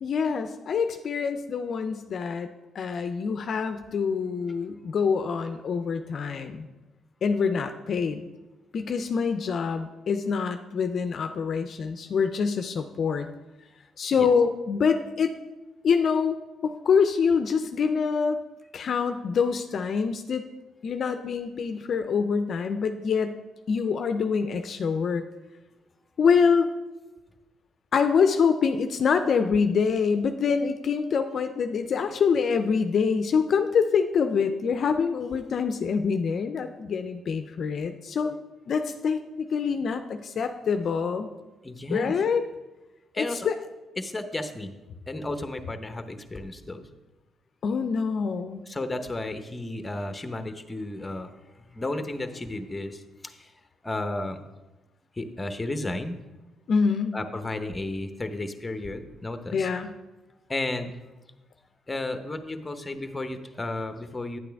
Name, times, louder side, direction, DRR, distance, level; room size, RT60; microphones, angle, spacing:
voice 1, 0.0-2.5 2.7-6.7 7.2-8.2 8.7-13.3 14.0-15.3 15.8-18.4 18.7-20.5 20.8-23.4 23.7-25.2 26.2-26.7 27.9-38.4 38.7-41.3 41.9-42.5 43.2-43.6 47.6-48.6 56.7-57.2 59.5-59.9, left 6 dB, 55° left, 7 dB, 0.5 m, -25 dB
voice 2, 41.6-42.1 43.1-43.5 44.0-44.7 45.1-46.8 48.7-51.3 51.7-53.5 53.8-54.4 55.2-56.2 57.1-59.7 60.5-61.0 61.9-64.4, left 2 dB, 20° left, 8 dB, 0.8 m, -33 dB
9.3 x 8.4 x 3.5 m, 1.1 s
cardioid pair, 90°, 0 cm